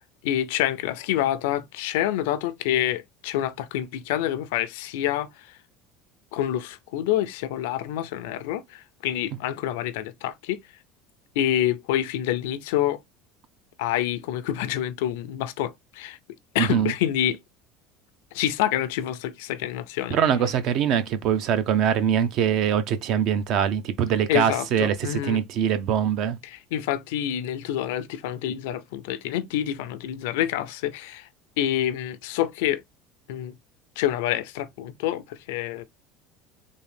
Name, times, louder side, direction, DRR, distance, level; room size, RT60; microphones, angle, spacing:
voice 1, 0.2-5.3 6.3-10.6 11.4-13.0 13.8-16.2 16.5-17.4 18.3-20.2 24.3-25.4 26.4-31.3 31.6-32.8 33.3-33.5 34.0-35.8, left 12 dB, 90° left, 0.5 m, -27 dB
voice 2, 16.6-16.9 20.1-26.4, right 8 dB, 55° right, 0.7 m, -23 dB
3.6 x 2.7 x 3.4 m
cardioid pair, 130°, 0 cm